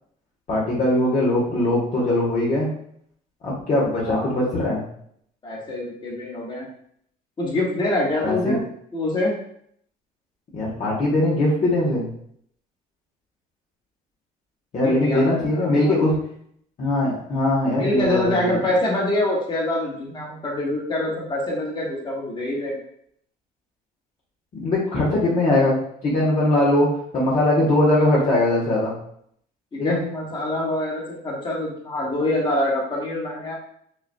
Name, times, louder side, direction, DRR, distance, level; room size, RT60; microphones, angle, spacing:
voice 1, 0.5-2.7 3.4-4.8 8.2-8.6 10.5-12.1 14.7-16.2 16.8-18.5 24.5-25.8 26.0-26.9 27.1-29.0 29.8-30.0, left 1 dB, 45° left, -7 dB, 1.1 m, -21 dB
voice 2, 4.0-4.3 5.4-6.7 7.4-8.6 8.9-9.3 14.7-15.9 17.7-22.8 29.7-33.6, left 1 dB, 30° left, -3 dB, 1.5 m, -25 dB
5.7 x 2.5 x 2.2 m, 0.67 s
cardioid pair, 110°, 17 cm